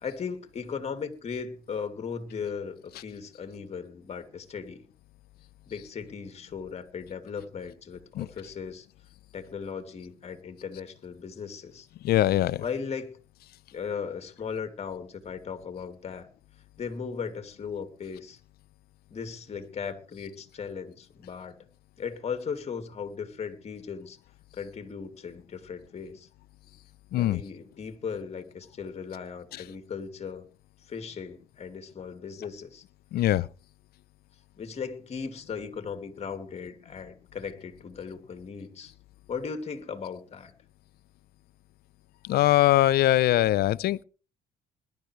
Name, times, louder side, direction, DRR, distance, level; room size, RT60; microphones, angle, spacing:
voice 1, 0.0-4.9 5.7-8.9 9.3-11.9 12.6-13.2 13.7-16.3 16.8-18.4 19.1-21.6 22.0-24.2 24.5-26.3 27.1-30.5 30.9-32.8 34.6-38.9 39.3-40.5, left 6 dB, 40° left, 2.7 m, -37 dB
voice 2, 12.0-12.6 27.1-27.4 33.1-33.5 42.2-44.0, left 14 dB, 65° left, 0.7 m, -22 dB
21.0 x 12.0 x 3.3 m
cardioid pair, 110°, 17 cm